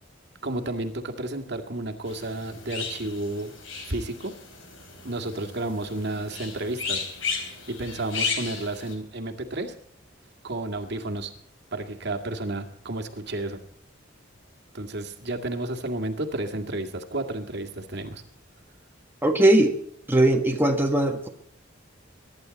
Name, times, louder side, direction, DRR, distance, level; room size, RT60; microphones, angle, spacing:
voice 1, 0.4-3.5 3.9-4.3 5.0-7.0 7.4-9.7 10.4-11.3 11.7-13.6 14.7-18.2, right 2 dB, 60° right, 5 dB, 2.2 m, -32 dB
sound 1, 2.1-8.9, left 5 dB, 75° left, 4.4 m, -34 dB
voice 2, 19.2-19.7 20.1-21.3, right 1 dB, 10° right, 2 dB, 1.5 m, -19 dB
23.0 x 11.0 x 4.2 m, 0.67 s
head